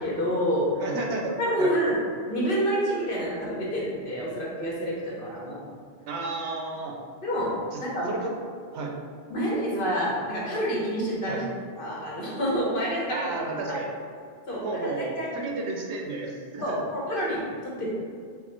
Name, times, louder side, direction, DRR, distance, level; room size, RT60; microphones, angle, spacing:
voice 1, 0.0-0.7 1.4-2.0 2.3-5.6 7.2-8.1 9.3-11.5 11.8-13.3 13.7-13.8 14.5-15.3 16.6-17.9, equal, 55° left, -5 dB, 1.1 m, -28 dB
voice 2, 0.8-1.7 6.1-7.0 7.7-7.8 8.1-8.3 8.7-8.9 11.3-11.4 13.1-13.9 14.6-16.8, right 3 dB, 85° right, 0 dB, 0.9 m, -32 dB
4.7 x 2.0 x 4.3 m, 2.2 s
omnidirectional pair, 1.1 m